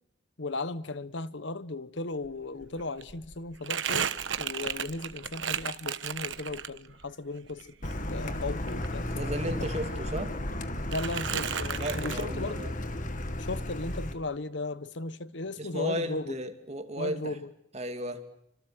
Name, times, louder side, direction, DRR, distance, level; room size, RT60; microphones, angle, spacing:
voice 1, 0.4-4.1 4.4-7.7 8.1-9.1 10.9-12.7 13.4-16.4 17.0-17.5, left 2 dB, 65° left, 1.1 m, -36 dB
Crumpling crinkling, 2.2-2.3 2.6-7.1 7.4-9.6 9.8-10.6 10.9-12.2, right 8 dB, 70° right, 1.2 m, -35 dB
Car, 7.8-14.1, left 1 dB, 40° left, 1.9 m, -34 dB
voice 2, 9.0-10.3 11.8-12.7 15.6-17.3 17.7-18.2, equal, 35° right, 2.7 m, -34 dB
28.5 x 25.5 x 7.8 m
head